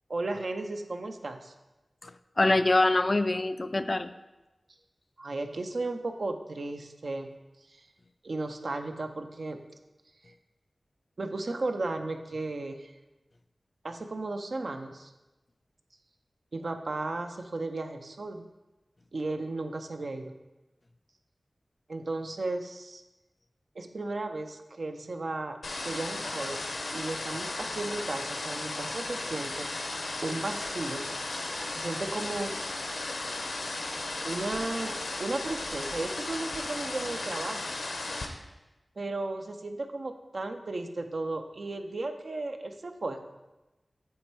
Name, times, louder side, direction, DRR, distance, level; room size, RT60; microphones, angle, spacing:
voice 1, 0.1-1.5 5.2-7.4 7.7-7.9 8.2-9.6 10.2-10.3 11.2-12.9 13.8-15.1 16.5-18.4 19.1-20.3 21.9-23.0 23.8-26.6 26.9-29.7 30.2-31.1 31.4-32.5 34.2-37.7 39.0-43.2, right 2 dB, 70° right, 6 dB, 0.5 m, -35 dB
voice 2, 2.0-4.1, left 2 dB, 40° left, 11 dB, 0.3 m, -25 dB
sound 1, 25.6-38.3, left 2 dB, 85° left, 0.8 m, -35 dB
8.4 x 3.3 x 4.6 m, 1.0 s
wide cardioid pair, 55°, 0 cm